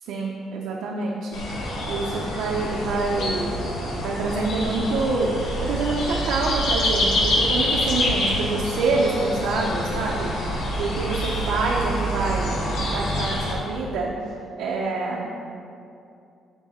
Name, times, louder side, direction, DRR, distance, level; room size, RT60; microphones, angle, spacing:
voice 1, 0.0-1.4 1.6-3.7 4.0-10.3 10.8-14.2 14.6-15.3, right 3 dB, 85° right, -3 dB, 0.7 m, -26 dB
sound 1, 1.3-13.6, equal, 85° left, 1.4 m, -26 dB
7.3 x 5.4 x 4.2 m, 2.5 s
cardioid pair, 90°, 0 cm